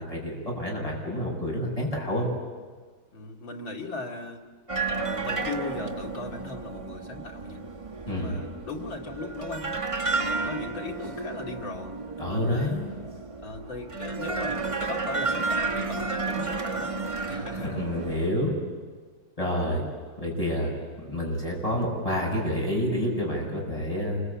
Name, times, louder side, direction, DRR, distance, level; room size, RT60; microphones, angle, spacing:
voice 1, 0.0-2.3 8.1-8.4 12.2-12.9 17.6-18.5 19.4-19.8 20.2-24.2, left 1 dB, 15° left, -2 dB, 7.4 m, -28 dB
voice 2, 3.1-4.4 4.9-7.6 8.0-9.8 10.2-12.8 13.4-16.9 17.3-17.8, left 3 dB, 65° left, 0 dB, 3.1 m, -38 dB
sound 1, 4.7-18.3, right 3 dB, 25° right, 0.8 m, -32 dB
28.0 x 23.0 x 8.6 m, 1.5 s
omnidirectional pair, 2.2 m